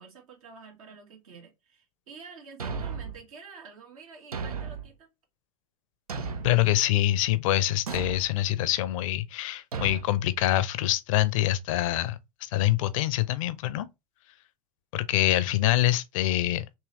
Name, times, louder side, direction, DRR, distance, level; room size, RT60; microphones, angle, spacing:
voice 1, 0.0-5.1, right 5 dB, 75° right, 1.9 m, -48 dB
Thump thud, 2.6-3.2 4.3-4.9 6.1-6.6 7.9-8.3 9.7-10.0, right 5 dB, 90° right, 0.6 m, -34 dB
voice 2, 6.4-13.9 14.9-16.6, left 14 dB, 65° left, 0.5 m, -25 dB
3.7 x 2.8 x 3.1 m
hypercardioid pair, 90°, 18 cm